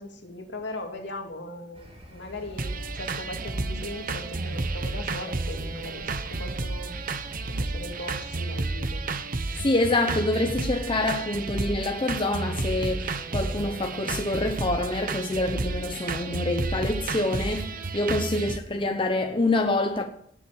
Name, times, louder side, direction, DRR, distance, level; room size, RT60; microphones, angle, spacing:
voice 1, 0.0-6.9 7.5-9.0 18.3-18.5, left 1 dB, 60° left, 2.6 m, -39 dB
sound 1, 1.7-8.5, equal, 30° right, 4.7 m, -46 dB
sound 2, 2.6-18.6, right 3 dB, 45° right, 0.9 m, -31 dB
voice 2, 9.6-20.0, left 2 dB, 25° left, 0.8 m, -26 dB
18.0 x 7.4 x 6.2 m
head